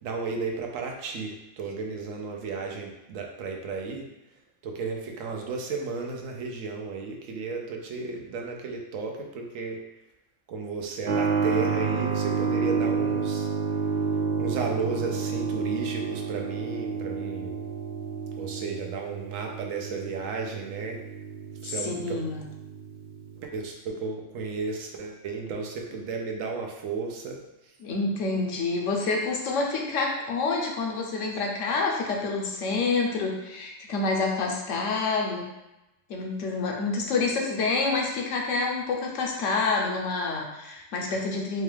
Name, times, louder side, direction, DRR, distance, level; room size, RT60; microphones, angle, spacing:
voice 1, 0.0-4.1 4.6-9.8 10.5-13.5 14.4-17.6 18.4-21.0 21.6-22.2 23.4-27.7, right 4 dB, 85° right, 1 dB, 1.0 m, -33 dB
Keyboard (musical), 11.0-23.5, right 5 dB, 55° right, 0.5 m, -30 dB
voice 2, 21.6-22.4 27.8-35.4 36.1-41.6, left 3 dB, 75° left, 0 dB, 1.0 m, -28 dB
4.3 x 2.3 x 3.3 m, 0.96 s
omnidirectional pair, 1.3 m